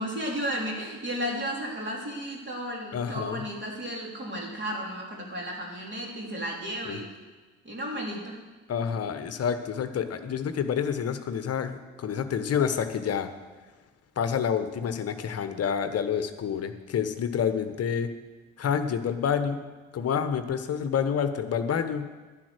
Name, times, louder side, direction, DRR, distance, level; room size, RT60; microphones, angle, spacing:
voice 1, 0.0-7.1 7.6-8.4, equal, 30° right, -2 dB, 3.9 m, -33 dB
voice 2, 2.9-3.4 6.8-7.0 8.7-13.3 14.2-18.1 18.6-19.6 19.9-22.1, left 7 dB, 40° left, 9 dB, 1.2 m, -28 dB
10.5 x 10.5 x 6.3 m, 1.3 s
figure-of-eight pair, 50°, 40 cm